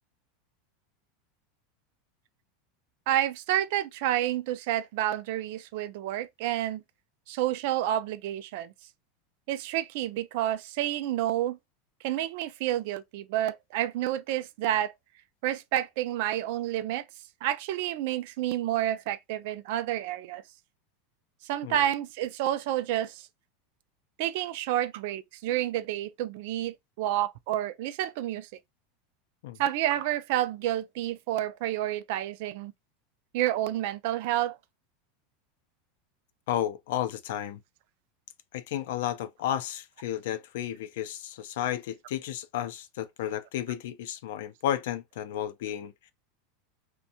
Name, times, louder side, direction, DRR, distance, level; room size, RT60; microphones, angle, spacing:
voice 1, 3.1-6.8 7.3-8.7 9.5-11.6 12.0-14.9 15.4-17.0 17.4-20.4 21.4-23.3 24.2-28.5 29.6-32.7 33.3-34.6, right 13 dB, 60° right, 0.3 m, -29 dB
voice 2, 36.5-37.6 38.5-45.9, left 11 dB, 75° left, 0.4 m, -32 dB
2.6 x 2.1 x 2.8 m
supercardioid pair, 150°, 0 cm